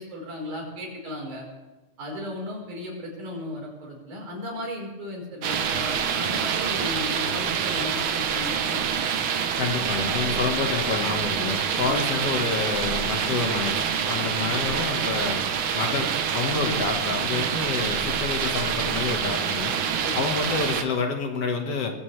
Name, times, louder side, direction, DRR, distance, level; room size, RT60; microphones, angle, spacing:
voice 1, 0.0-1.5 2.0-9.1 9.8-10.4 11.8-12.0 16.5-16.8 20.0-20.2, left 1 dB, 85° right, -1 dB, 6.1 m, -36 dB
sound 1, 5.4-20.8, right 7 dB, 60° right, 1.6 m, -26 dB
voice 2, 9.6-15.4 15.7-19.7 20.1-22.0, left 4 dB, 55° left, 3 dB, 2.5 m, -28 dB
21.5 x 15.5 x 3.4 m, 1.1 s
omnidirectional pair, 3.3 m